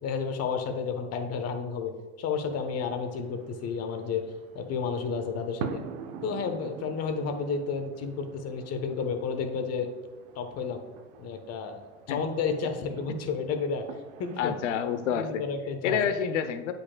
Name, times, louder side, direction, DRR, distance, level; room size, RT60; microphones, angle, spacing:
voice 1, 0.0-4.3 4.5-5.8 6.2-9.9 10.3-10.8 11.2-11.8 12.1-13.9 14.2-14.6 15.1-16.1, left 5 dB, 45° left, 6 dB, 1.0 m, -31 dB
sound 1, 2.5-15.1, right 6 dB, 55° right, 0.7 m, -45 dB
voice 2, 14.4-15.4 15.8-16.7, left 8 dB, 85° left, 9 dB, 0.7 m, -28 dB
8.3 x 5.2 x 2.2 m, 1.3 s
supercardioid pair, 100°, 35 cm